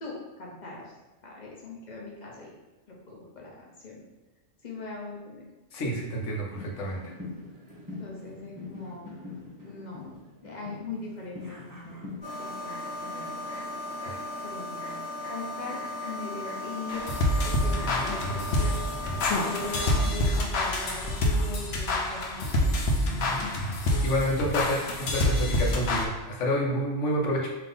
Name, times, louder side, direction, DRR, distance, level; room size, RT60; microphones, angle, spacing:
voice 1, 0.0-0.9 1.2-2.5 3.1-3.5 3.8-4.0 4.6-5.4 8.0-9.1 9.6-10.1 10.4-12.0 12.4-12.8 13.0-13.4 14.4-15.0 15.3-17.1 17.4-17.7 18.0-18.8 19.4-22.8, left 3 dB, 40° left, -3 dB, 0.9 m, -40 dB
voice 2, 5.7-7.1 14.0-14.2 24.0-27.5, equal, 85° left, -1 dB, 1.1 m, -29 dB
sound 1, 6.5-12.2, left 3 dB, 20° right, 0.8 m, -43 dB
sound 2, 12.2-20.1, left 1 dB, 25° left, 1.1 m, -36 dB
sound 3, 16.9-26.0, left 1 dB, 65° left, 0.9 m, -27 dB
3.6 x 2.8 x 3.9 m, 1.2 s
omnidirectional pair, 1.2 m